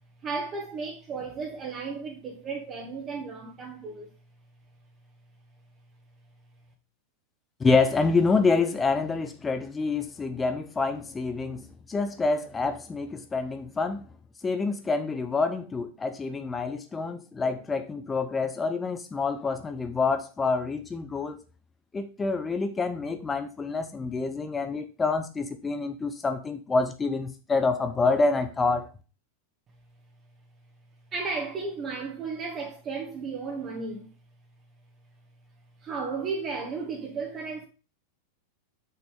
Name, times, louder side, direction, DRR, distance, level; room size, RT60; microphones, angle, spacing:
voice 1, 0.2-4.1 31.1-34.1 35.8-37.7, right 4 dB, 30° right, 1.5 m, -34 dB
voice 2, 7.6-14.0 14.4-21.4 21.9-28.9, left 4 dB, 15° left, 0.7 m, -27 dB
6.6 x 6.2 x 3.3 m
figure-of-eight pair, 90°, 0 cm